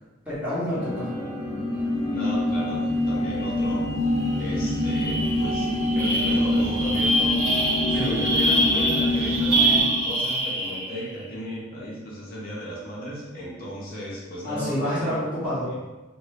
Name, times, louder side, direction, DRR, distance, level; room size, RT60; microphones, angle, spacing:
voice 1, 0.2-1.1 8.0-8.2 14.4-15.7, equal, 5° right, -12 dB, 1.3 m, -28 dB
sound 1, 0.7-9.8, left 1 dB, 15° left, 0.8 m, -25 dB
voice 2, 2.1-4.1 4.4-7.4 7.9-15.1 15.6-15.7, equal, 50° left, -5 dB, 0.6 m, -35 dB
sound 2, 4.2-4.4 4.7-11.1, right 1 dB, 55° right, 1.3 m, -25 dB
2.6 x 2.4 x 3.1 m, 1.1 s
head